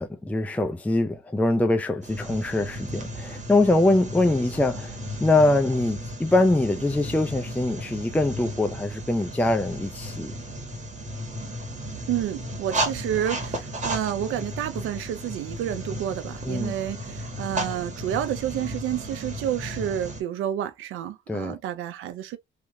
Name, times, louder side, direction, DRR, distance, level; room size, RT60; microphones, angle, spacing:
voice 1, 0.1-10.3 16.5-16.7 21.3-21.6, left 2 dB, 5° left, 0.5 m, -23 dB
sound 1, 2.0-20.2, right 1 dB, 35° right, 1.6 m, -34 dB
voice 2, 12.1-22.4, right 11 dB, 85° right, 0.6 m, -30 dB
3.3 x 2.9 x 2.6 m
cardioid pair, 90°, 20 cm